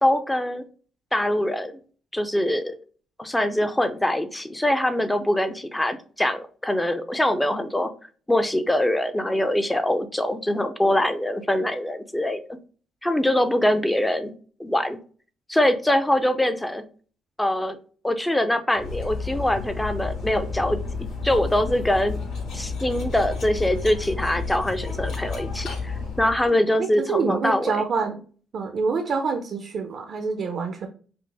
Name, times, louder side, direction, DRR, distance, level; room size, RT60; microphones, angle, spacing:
voice 1, 0.0-0.6 1.1-1.7 2.1-2.7 3.2-7.9 8.3-12.4 13.0-14.3 14.6-15.0 15.5-16.8 17.4-17.8 18.0-22.2 22.5-27.8, left 1 dB, 10° left, 9 dB, 0.5 m, -23 dB
Cutlery silverware, 18.7-26.5, left 4 dB, 85° left, 2.0 m, -31 dB
voice 2, 26.8-28.2 28.5-30.9, right 5 dB, 60° right, 5 dB, 0.6 m, -26 dB
5.1 x 2.0 x 3.3 m, 0.41 s
cardioid pair, 90°, 0 cm